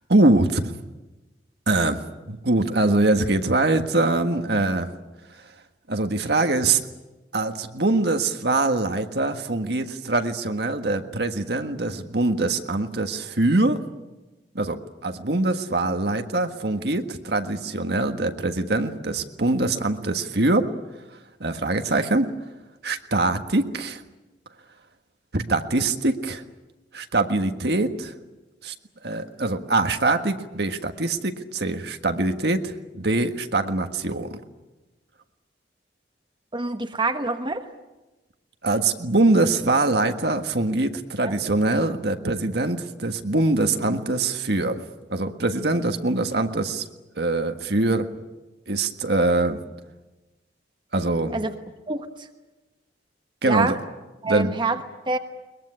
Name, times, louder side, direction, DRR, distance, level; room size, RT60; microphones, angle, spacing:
voice 1, 0.1-0.7 1.7-4.9 5.9-6.8 7.3-13.8 14.5-20.7 21.4-22.3 22.8-24.0 25.3-26.4 26.9-28.1 28.6-28.7 29.0-34.4 38.6-44.8 45.1-46.8 47.2-48.1 48.7-49.6 50.9-51.3 53.4-53.8 54.2-54.5, right 2 dB, 65° right, 6 dB, 1.6 m, -23 dB
voice 2, 36.5-37.6 41.2-41.4 51.3-51.5 51.9-52.1 53.4-53.8 54.2-54.8 55.1-55.2, right 3 dB, 25° right, 6 dB, 1.3 m, -26 dB
22.0 x 21.5 x 9.8 m, 1.1 s
head